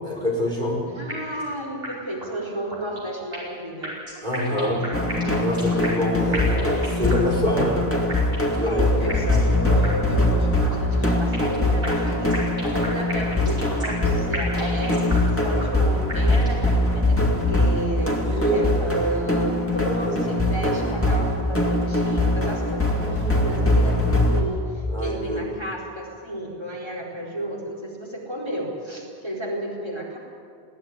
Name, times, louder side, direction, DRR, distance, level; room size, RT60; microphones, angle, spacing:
voice 1, 0.0-0.8 4.2-4.8 5.4-7.9 8.6-8.9 18.1-19.1 19.8-20.2 24.9-25.6, equal, 50° right, -3 dB, 5.2 m, -25 dB
voice 2, 0.9-3.9 4.3-4.8 5.2-5.5 8.6-12.5 12.9-30.2, right 1 dB, 25° right, -2 dB, 4.5 m, -32 dB
sound 1, 1.1-1.5 1.8-1.9 2.2-2.3 2.7-3.6 3.8-6.1 6.3-7.3 7.6-7.7 8.1-8.6 9.1-9.5 9.8-9.9 10.2-10.3 10.7-11.6 11.8-14.1 14.3-15.3 15.6-15.7 16.1-16.6, equal, 70° right, 5.6 m, -33 dB
sound 2, 4.9-24.4, left 1 dB, 10° left, 2.3 m, -22 dB
20.5 x 16.5 x 9.8 m, 2.2 s
omnidirectional pair, 1.0 m